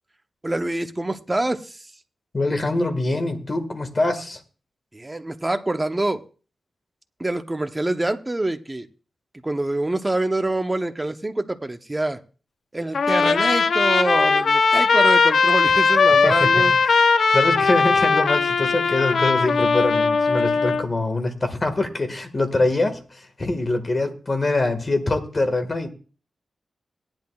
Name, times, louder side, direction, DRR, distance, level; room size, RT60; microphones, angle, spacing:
voice 1, 0.4-1.8 4.9-6.2 7.2-8.9 9.4-12.2 12.7-16.7, right 2 dB, 20° right, 7 dB, 0.8 m, -25 dB
voice 2, 2.3-4.4 16.2-17.0 17.3-25.9, left 2 dB, 35° left, 6 dB, 1.7 m, -24 dB
Trumpet, 12.9-20.8, left 4 dB, 70° left, 0.6 m, -19 dB
18.0 x 10.5 x 2.4 m, 0.37 s
wide cardioid pair, 110°, 0 cm